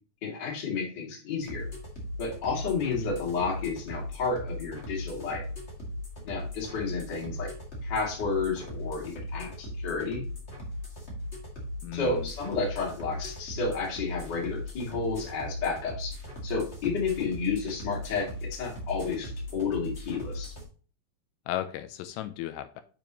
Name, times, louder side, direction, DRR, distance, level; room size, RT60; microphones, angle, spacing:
voice 1, 0.2-1.7 2.2-5.4 6.2-7.5 7.8-10.2 11.9-16.1 16.4-20.5, left 4 dB, 35° left, -2 dB, 1.9 m, -31 dB
sound 1, 1.4-20.6, left 1 dB, 55° left, 0.7 m, -38 dB
voice 2, 11.8-12.3 21.5-22.8, left 13 dB, 85° left, 10 dB, 2.8 m, -35 dB
7.0 x 5.8 x 3.0 m, 0.39 s
omnidirectional pair, 4.9 m